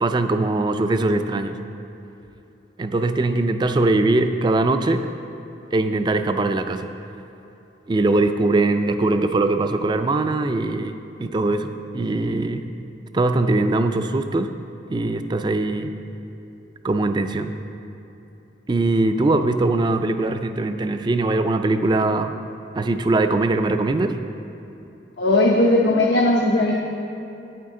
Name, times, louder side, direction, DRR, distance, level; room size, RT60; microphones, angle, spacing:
voice 1, 0.0-1.6 2.8-5.1 5.7-6.9 7.9-12.6 13.1-14.5 14.9-15.9 16.8-17.5 18.7-22.3 22.7-24.2, right 2 dB, 25° right, 8 dB, 0.3 m, -21 dB
voice 2, 25.2-26.7, left 2 dB, 85° left, -2 dB, 0.8 m, -17 dB
9.3 x 9.0 x 3.7 m, 2.9 s
head